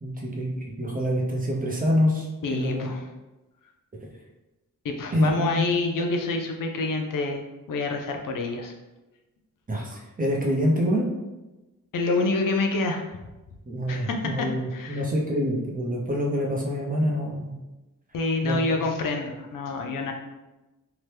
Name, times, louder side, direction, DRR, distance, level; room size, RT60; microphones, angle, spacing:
voice 1, 0.0-2.9 5.1-5.6 9.7-11.1 13.7-17.5 18.4-18.8, equal, 25° right, -1 dB, 0.6 m, -26 dB
voice 2, 2.4-3.1 4.8-7.4 7.7-8.7 11.9-13.0 13.9-14.5 14.7-15.1 18.1-20.1, left 3 dB, 75° left, 3 dB, 0.5 m, -27 dB
2.9 x 2.1 x 3.2 m, 1.1 s
wide cardioid pair, 105°, 33 cm